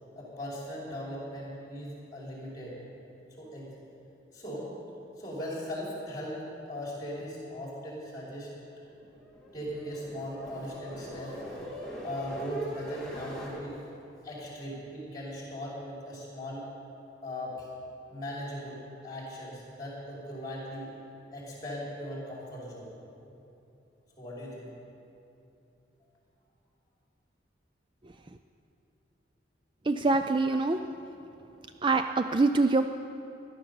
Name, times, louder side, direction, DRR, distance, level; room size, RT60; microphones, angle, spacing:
voice 1, 0.1-2.8 3.4-3.7 4.3-4.7 5.2-6.4 6.7-8.5 9.5-11.4 12.0-13.8 14.2-16.7 17.2-17.7 18.1-20.9 21.3-22.9 24.2-24.7, equal, 20° left, -5 dB, 4.9 m, -39 dB
sound 1, 8.9-13.6, equal, 5° left, 2.6 m, -42 dB
voice 2, 29.9-30.8 31.8-32.9, right 3 dB, 25° right, 7 dB, 0.4 m, -24 dB
17.0 x 12.0 x 7.1 m, 2.8 s
head